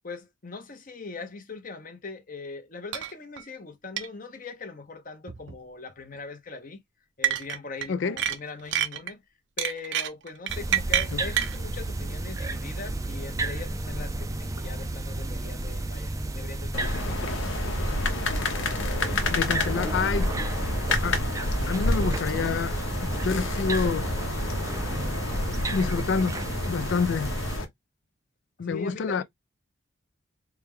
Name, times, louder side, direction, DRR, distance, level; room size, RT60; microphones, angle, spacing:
voice 1, 0.0-6.8 7.2-9.2 9.6-18.0 28.6-29.2, left 3 dB, 45° left, 0.9 m, -41 dB
sound 1, 2.9-3.1 3.4-3.5 4.0-4.1 5.3-5.6 7.2-7.9 8.2-9.1 9.6-11.6, right 10 dB, 65° right, 0.6 m, -27 dB
sound 2, 10.5-27.6, right 2 dB, 15° right, 0.4 m, -32 dB
voice 2, 11.1-11.5 19.3-20.3 21.0-21.3 21.7-24.1 25.7-26.4 26.7-27.3 28.6-29.2, left 5 dB, 65° left, 0.4 m, -28 dB
sound 3, 16.7-27.6, left 2 dB, 85° left, 1.0 m, -29 dB
4.6 x 2.2 x 3.6 m
head